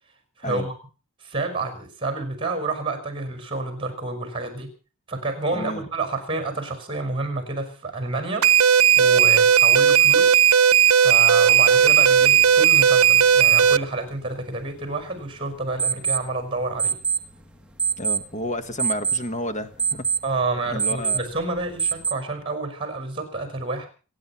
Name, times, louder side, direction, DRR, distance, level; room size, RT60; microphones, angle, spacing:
voice 1, 0.4-0.7 1.2-4.7 5.1-10.4 10.9-16.9 20.2-23.9, right 3 dB, 25° right, 7 dB, 5.0 m, -29 dB
voice 2, 5.5-5.8 18.0-20.1 20.7-21.2, left 1 dB, 35° left, 10 dB, 1.5 m, -31 dB
sound 1, 8.4-13.8, right 8 dB, 80° right, 0.7 m, -15 dB
sound 2, 11.7-22.1, right 6 dB, 5° right, 1.3 m, -29 dB
27.0 x 9.3 x 5.7 m, 0.38 s
head